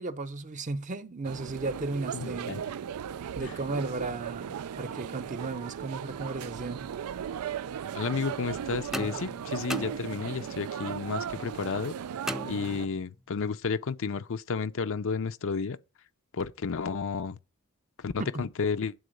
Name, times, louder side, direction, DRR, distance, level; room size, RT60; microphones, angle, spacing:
voice 1, 0.0-2.6 3.4-6.9 18.2-18.5, right 3 dB, 35° right, 0.7 m, -35 dB
sound 1, 1.2-12.9, right 8 dB, 85° right, 0.4 m, -37 dB
voice 2, 2.1-2.6 3.4-3.6 7.9-11.9 12.4-15.8 16.3-17.4 18.0-18.1 18.4-18.9, left 5 dB, 60° left, 0.6 m, -32 dB
sound 2, 8.9-10.6 12.3-13.2, equal, ahead, 0.3 m, -38 dB
9.5 x 3.9 x 6.4 m
head